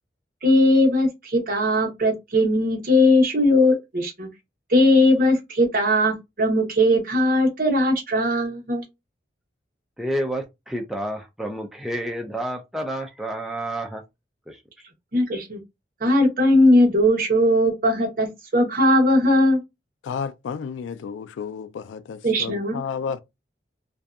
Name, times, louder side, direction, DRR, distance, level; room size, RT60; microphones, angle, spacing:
voice 1, 0.4-4.3 4.7-8.8 15.1-15.6 16.0-19.6 22.2-22.8, left 1 dB, 45° right, 0.8 m, -19 dB
voice 2, 10.0-14.0 14.5-14.6, right 1 dB, ahead, 0.3 m, -29 dB
voice 3, 20.0-23.2, left 6 dB, 85° left, 0.3 m, -32 dB
2.6 x 2.2 x 2.3 m
head